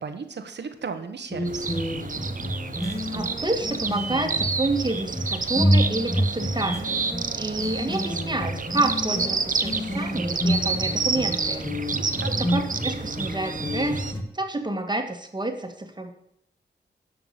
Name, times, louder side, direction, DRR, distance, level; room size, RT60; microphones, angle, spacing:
voice 1, 0.0-1.8 11.9-12.5, right 5 dB, 80° right, 8 dB, 1.2 m, -36 dB
sound 1, 1.3-14.2, equal, 15° left, 2.5 m, -28 dB
sound 2, 1.4-14.1, right 4 dB, 50° right, 1.0 m, -29 dB
voice 2, 3.1-11.7 12.3-14.1 14.3-16.1, right 2 dB, 25° right, 6 dB, 1.8 m, -29 dB
12.5 x 5.9 x 6.7 m, 0.77 s
cardioid pair, 65°, 18 cm